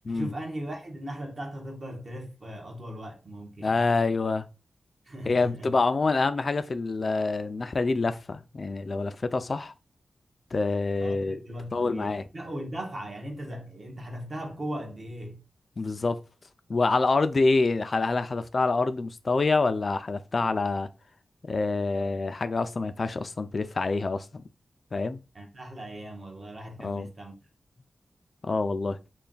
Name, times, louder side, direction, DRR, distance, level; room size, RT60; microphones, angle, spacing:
voice 1, 0.1-3.9 5.1-5.8 11.0-11.2 11.4-15.4 25.3-27.4, equal, 40° right, 1.2 m, -38 dB
voice 2, 3.6-4.5 5.2-9.7 10.5-11.4 11.7-12.3 15.8-16.2 16.7-20.9 21.4-24.4 24.9-25.2 26.8-27.1 28.4-29.0, left 3 dB, 40° left, 0.3 m, -26 dB
3.3 x 2.3 x 3.9 m
wide cardioid pair, 125°, 0 cm